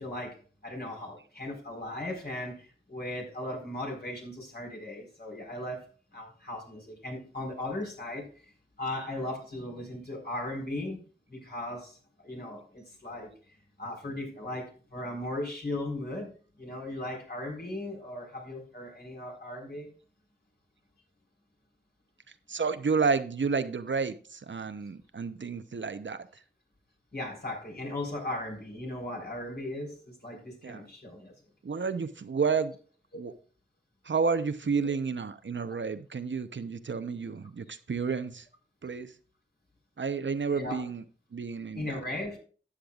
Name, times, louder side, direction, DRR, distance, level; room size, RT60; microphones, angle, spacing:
voice 1, 0.0-8.5 8.8-11.0 11.3-12.0 12.2-13.3 13.8-16.3 16.6-19.9 27.1-31.3 40.5-40.8 41.7-42.4, left 1 dB, 50° left, 0 dB, 4.3 m, -37 dB
voice 2, 22.5-26.2 30.6-30.8 31.6-32.7 33.2-33.3 34.0-38.4 38.8-39.1 40.0-41.0 41.3-42.0, right 5 dB, 70° right, 11 dB, 0.8 m, -30 dB
13.0 x 8.8 x 2.4 m, 0.39 s
wide cardioid pair, 65°, 20 cm